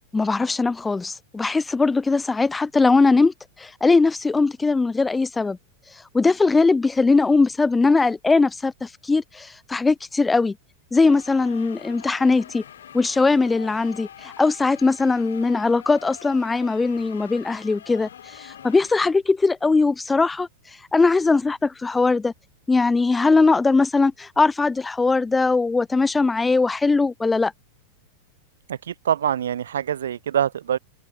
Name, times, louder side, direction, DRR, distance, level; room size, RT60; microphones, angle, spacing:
voice 1, 0.1-5.6 6.1-10.6 10.9-12.6 12.9-20.5 20.9-22.3 22.7-27.5, left 3 dB, 10° left, 0.5 m, -20 dB
sound 1, 11.0-19.1, left 9 dB, 65° left, 3.1 m, -44 dB
voice 2, 28.7-30.8, right 9 dB, 65° right, 0.6 m, -25 dB
figure-of-eight pair, 90°, 0 cm